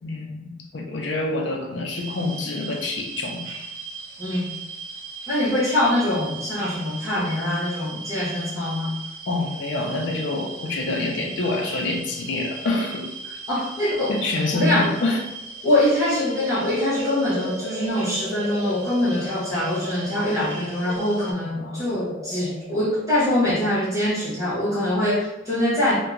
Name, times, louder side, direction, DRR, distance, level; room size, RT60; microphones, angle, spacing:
voice 1, 0.0-3.5 9.3-13.1 14.1-15.2 21.6-21.9, left 2 dB, 70° left, 1 dB, 0.5 m, -26 dB
sound 1, 1.9-21.3, right 4 dB, 85° right, 0.6 m, -38 dB
voice 2, 4.2-4.5 5.3-8.9 13.5-14.2 14.5-14.9 15.6-26.0, left 1 dB, 20° right, -11 dB, 1.2 m, -23 dB
sound 2, 15.5-24.2, equal, 15° left, 1.1 m, -37 dB
2.8 x 2.2 x 3.6 m, 0.93 s
head